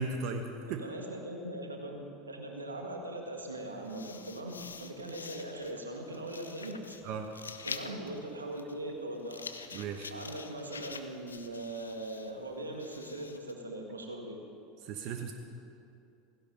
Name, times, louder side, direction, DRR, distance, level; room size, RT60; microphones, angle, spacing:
voice 1, 0.0-0.8 7.0-7.3 9.7-10.1 14.8-15.3, right 4 dB, 55° right, 5 dB, 1.2 m, -36 dB
voice 2, 0.7-6.8 7.6-9.4 10.1-14.4, right 1 dB, 90° right, 2 dB, 1.8 m, -40 dB
sound 1, 3.6-13.5, left 5 dB, 85° left, 0.7 m, -47 dB
16.5 x 16.0 x 5.3 m, 2.6 s
figure-of-eight pair, 80°, 0 cm